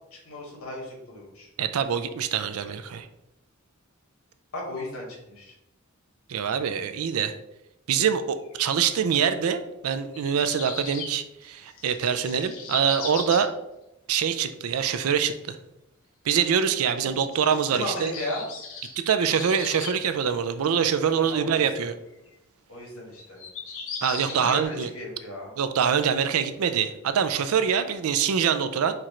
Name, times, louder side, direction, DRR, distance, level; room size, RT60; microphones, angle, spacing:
voice 1, 0.1-1.5 4.5-5.5 17.7-18.4 21.3-21.8 22.7-23.4 24.1-25.5, left 2 dB, 80° left, -2 dB, 1.7 m, -36 dB
voice 2, 1.6-3.1 6.3-7.3 7.9-13.5 14.1-15.6 16.2-18.1 19.0-21.9 24.0-24.9 25.6-28.9, right 7 dB, 85° right, 10 dB, 0.4 m, -24 dB
sound 1, 8.5-8.6 10.1-11.1 11.4-13.5 17.1-20.0 20.3-20.4 20.9-21.0 21.5-21.8 22.3-22.4 23.2-24.6, left 5 dB, 65° left, 0.9 m, -38 dB
4.5 x 2.5 x 4.2 m, 0.88 s
head